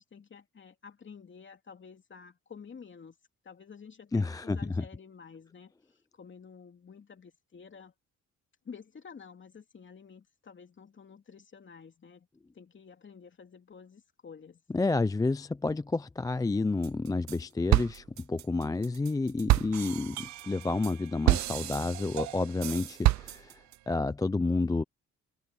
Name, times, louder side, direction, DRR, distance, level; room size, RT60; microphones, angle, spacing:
voice 1, 0.0-3.2 3.4-7.9 8.6-12.3 12.5-14.6, left 6 dB, 40° left, 2.9 m, -50 dB
voice 2, 4.1-4.8 14.7-23.6 23.9-24.8, left 3 dB, 10° left, 0.4 m, -30 dB
sound 1, 16.8-17.4 17.7-23.8, right 17 dB, 65° right, 0.5 m, -29 dB
cardioid pair, 90°, 30 cm